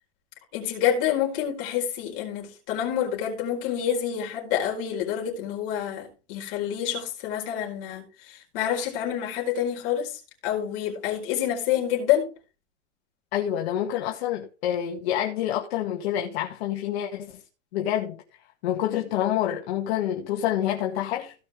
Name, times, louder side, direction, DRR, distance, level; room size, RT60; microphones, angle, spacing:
voice 1, 0.5-12.3, left 10 dB, 45° left, 4.4 m, -28 dB
voice 2, 13.3-17.4 17.7-18.2 18.6-21.3, left 11 dB, 60° left, 2.0 m, -27 dB
17.0 x 5.8 x 3.4 m
supercardioid pair, 155°, 34 cm